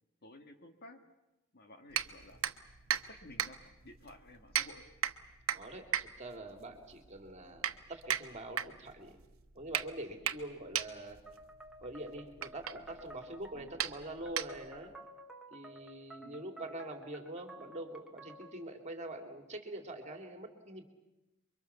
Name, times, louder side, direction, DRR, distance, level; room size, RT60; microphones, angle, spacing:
voice 1, 0.2-1.0 1.5-2.4 3.1-4.8 13.5-13.7 16.2-16.5, left 1 dB, 50° left, 6 dB, 2.2 m, -54 dB
sound 1, 1.9-14.9, right 9 dB, 85° right, 1.1 m, -38 dB
voice 2, 5.5-9.1 9.5-11.2 11.8-14.9 15.5-20.8, right 1 dB, 35° right, 5 dB, 3.0 m, -45 dB
sound 2, 11.3-18.6, right 1 dB, 5° right, 2.3 m, -54 dB
28.5 x 23.5 x 7.1 m, 1.0 s
head